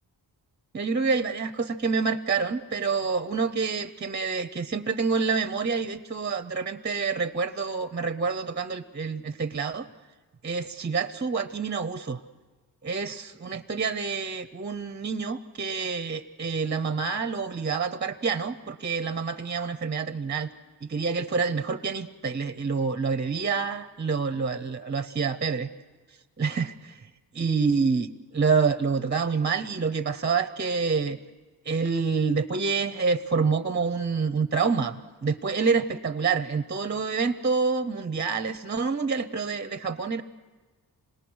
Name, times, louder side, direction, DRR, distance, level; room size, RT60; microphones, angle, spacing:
voice 1, 0.7-9.9 10.4-12.2 12.8-20.5 20.8-25.7 26.4-27.0 27.3-31.2 31.7-40.2, right 5 dB, 25° right, 11 dB, 0.7 m, -27 dB
26.5 x 20.0 x 6.3 m, 1.3 s
wide cardioid pair, 110°, 40 cm